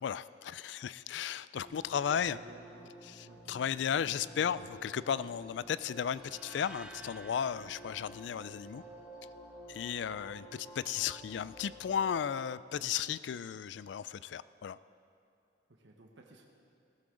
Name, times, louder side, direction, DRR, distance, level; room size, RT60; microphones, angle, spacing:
voice 1, 0.0-2.4 3.1-8.8 9.7-14.8, left 8 dB, 70° left, 16 dB, 0.3 m, -35 dB
sound 1, 1.6-12.3, right 1 dB, 40° left, 2.4 m, -52 dB
voice 2, 2.1-3.0 3.3-3.4 9.8-9.9 15.7-16.5, right 2 dB, 75° right, 1 dB, 1.1 m, -55 dB
sound 2, 6.1-9.3, right 2 dB, 5° right, 0.5 m, -53 dB
16.5 x 12.5 x 3.8 m, 2.6 s
head